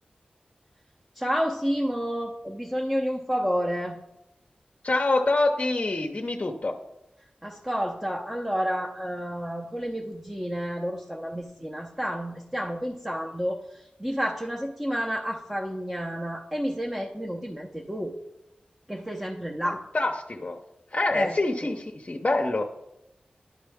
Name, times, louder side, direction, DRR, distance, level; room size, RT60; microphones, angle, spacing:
voice 1, 1.2-4.0 7.4-18.1 18.9-19.8 21.1-21.4 21.6-21.7, equal, 10° right, 1 dB, 0.7 m, -30 dB
voice 2, 4.8-6.7 19.6-20.6 20.9-22.6, left 2 dB, 45° left, 2 dB, 0.6 m, -26 dB
11.5 x 4.3 x 3.5 m, 0.88 s
wide cardioid pair, 50°, 3 cm